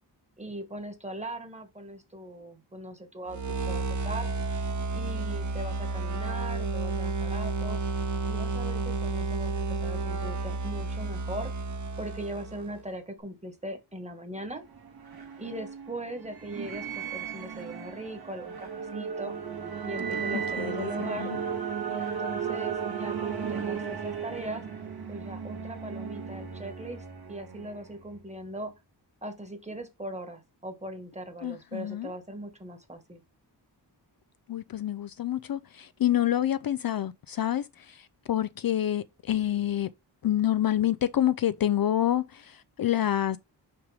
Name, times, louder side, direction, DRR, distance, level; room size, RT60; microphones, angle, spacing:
voice 1, 0.4-3.4 3.7-4.3 4.9-7.8 8.3-11.5 12.0-14.6 15.4-19.4 19.8-21.3 21.9-24.6 25.1-28.7 29.2-33.2, right 1 dB, 15° right, 1.5 m, -39 dB
sound 1, 3.3-12.8, right 3 dB, 45° right, 0.9 m, -31 dB
sound 2, 14.4-28.2, right 7 dB, 60° right, 2.0 m, -35 dB
voice 2, 20.6-21.3 31.4-32.1 34.5-39.9 40.2-43.4, left 12 dB, 55° left, 0.5 m, -28 dB
5.9 x 5.2 x 3.4 m
wide cardioid pair, 90°, 43 cm